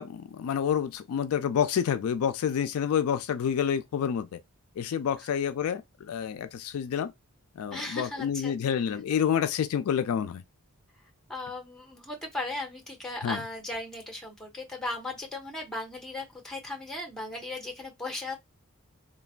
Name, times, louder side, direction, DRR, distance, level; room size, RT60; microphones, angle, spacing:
voice 1, 0.0-4.4 4.8-7.1 7.6-10.4 13.2-13.4, left 8 dB, 70° left, 0.3 m, -28 dB
voice 2, 7.7-8.5 11.3-18.4, left 2 dB, ahead, 0.9 m, -37 dB
3.1 x 2.2 x 2.4 m
head